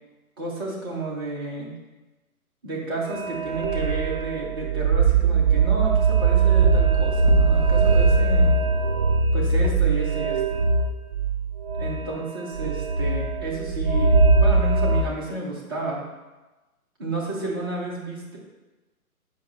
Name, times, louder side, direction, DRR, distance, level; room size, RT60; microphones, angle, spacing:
voice 1, 0.4-1.7 2.6-8.5 9.3-10.6 11.8-16.0 17.0-18.4, right 2 dB, 15° right, -4 dB, 0.7 m, -31 dB
sound 1, 3.1-15.0, right 4 dB, 65° right, 1.1 m, -20 dB
7.1 x 4.8 x 3.1 m, 1.1 s
figure-of-eight pair, 135°, 44 cm